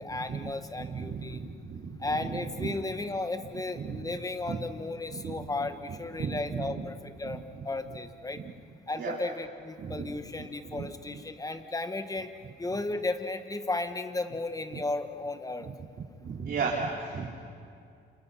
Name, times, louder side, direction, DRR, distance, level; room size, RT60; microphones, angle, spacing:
voice 1, 0.0-1.4 2.0-8.4 8.9-12.3 12.6-15.7, left 2 dB, 15° left, 9 dB, 1.6 m, -34 dB
voice 2, 0.8-1.9 2.3-2.4 3.8-3.9 4.5-4.6 5.1-5.3 6.2-6.8 7.2-7.4 9.0-9.1 9.8-10.0 10.7-10.9 16.2-17.3, right 5 dB, 55° right, -4 dB, 4.1 m, -34 dB
28.5 x 27.5 x 5.8 m, 2.4 s
cardioid pair, 90°, 20 cm